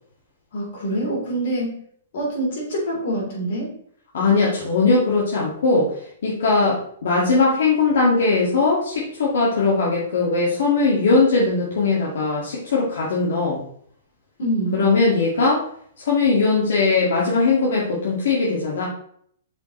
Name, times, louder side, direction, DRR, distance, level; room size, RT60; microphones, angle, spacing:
voice 1, 0.5-1.7 2.1-3.7 14.4-14.8, right 1 dB, 45° left, -2 dB, 3.0 m, -25 dB
voice 2, 4.1-13.6 14.7-15.7 16.0-18.9, left 3 dB, 65° left, -4 dB, 1.8 m, -20 dB
7.6 x 5.5 x 3.1 m, 0.63 s
hypercardioid pair, 180°, 0 cm